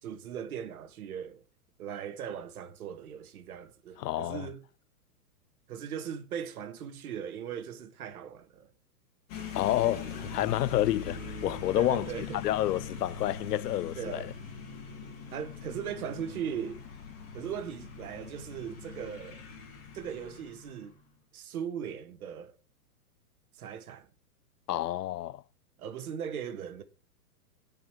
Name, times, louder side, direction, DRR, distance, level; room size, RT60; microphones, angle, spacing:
voice 1, 0.0-1.4 1.8-4.6 5.7-8.7 11.7-12.5 14.0-14.3 15.3-16.8 17.3-19.4 19.9-21.0 21.3-22.6 23.5-24.1 25.8-26.8, right 8 dB, 65° right, 2.0 m, -39 dB
voice 2, 4.0-4.5 9.5-14.3 24.7-25.4, left 14 dB, 85° left, 0.6 m, -29 dB
sound 1, 9.3-21.0, left 5 dB, 30° left, 3.3 m, -42 dB
9.5 x 5.7 x 7.2 m
hypercardioid pair, 155°, 46 cm